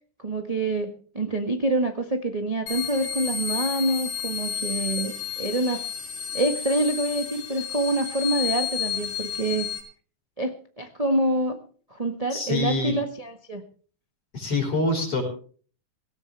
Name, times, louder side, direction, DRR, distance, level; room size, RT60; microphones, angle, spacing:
voice 1, 0.2-5.8 6.3-9.7 10.4-11.6 11.9-13.6, right 2 dB, 25° right, 4 dB, 0.8 m, -26 dB
sound 1, 2.7-9.8, left 8 dB, 80° left, 6.5 m, -31 dB
voice 2, 12.3-12.9 14.3-15.2, left 3 dB, 50° left, 3 dB, 6.0 m, -25 dB
17.5 x 17.5 x 3.4 m, 0.43 s
omnidirectional pair, 3.5 m